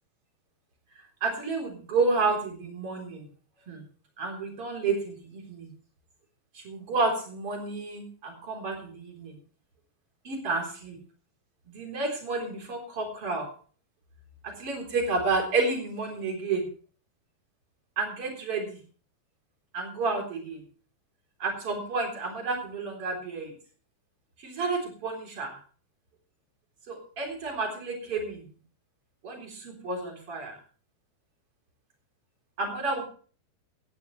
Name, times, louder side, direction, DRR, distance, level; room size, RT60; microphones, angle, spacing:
voice 1, 1.2-3.3 3.7-3.8 4.2-5.7 6.5-9.4 10.2-11.0 11.7-13.5 14.4-16.7 18.0-18.8 19.7-20.6 21.4-23.6 24.4-25.6 26.9-28.4 29.2-30.6 32.6-33.0, right 3 dB, 35° right, 2 dB, 4.2 m, -30 dB
17.5 x 12.5 x 3.2 m, 0.40 s
omnidirectional pair, 5.0 m